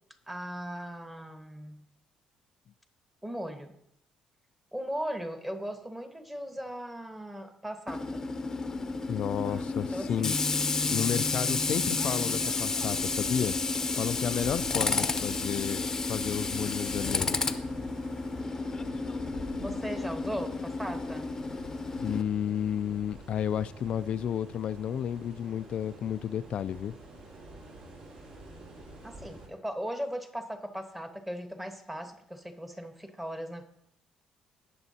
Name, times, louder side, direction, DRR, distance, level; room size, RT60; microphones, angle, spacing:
voice 1, 0.3-1.9 3.2-3.7 4.7-8.2 9.4-10.3 19.6-21.3 29.0-33.7, equal, 10° right, 1.2 m, -38 dB
Tools, 7.9-22.2, left 3 dB, 25° left, 0.7 m, -31 dB
voice 2, 9.1-10.4 10.9-13.6 14.0-17.5 22.0-27.0, left 9 dB, 55° left, 0.3 m, -32 dB
sound 1, 12.8-29.5, right 2 dB, 60° right, 3.5 m, -47 dB
18.5 x 7.0 x 2.8 m
cardioid pair, 115°, 2 cm